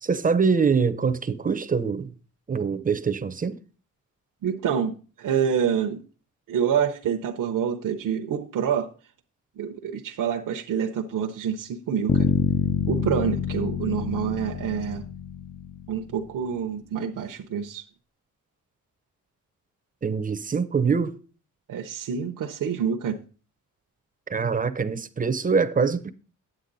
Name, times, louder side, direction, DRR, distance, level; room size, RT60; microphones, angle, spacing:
voice 1, 0.0-2.1 2.5-3.6 20.0-21.1 24.3-26.1, right 5 dB, 25° right, 0.6 m, -24 dB
voice 2, 4.4-6.0 6.5-8.9 9.6-12.3 12.9-15.0 15.9-17.8 21.7-23.2, right 7 dB, 80° right, 0.8 m, -27 dB
Bass guitar, 12.1-16.1, left 7 dB, 30° left, 0.4 m, -27 dB
10.0 x 8.1 x 3.9 m
wide cardioid pair, 140°, 32 cm